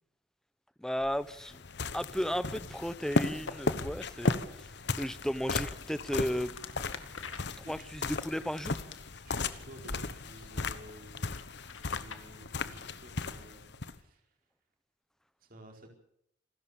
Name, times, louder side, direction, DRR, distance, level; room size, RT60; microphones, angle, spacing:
voice 1, 0.8-1.6 1.9-4.7 5.0-6.6 7.7-8.8, equal, 5° left, 14 dB, 0.9 m, -34 dB
sound 1, 1.0-14.0, left 3 dB, 65° left, 1.2 m, -36 dB
sound 2, 3.3-3.6 4.1-4.4 4.9-5.1 5.6-9.4 9.8-10.0 10.4-12.2, left 4 dB, 85° left, 2.1 m, -45 dB
voice 2, 9.2-11.4 11.9-14.2 15.4-15.9, right 1 dB, 50° right, 2 dB, 4.6 m, -53 dB
27.5 x 13.5 x 7.0 m, 0.75 s
head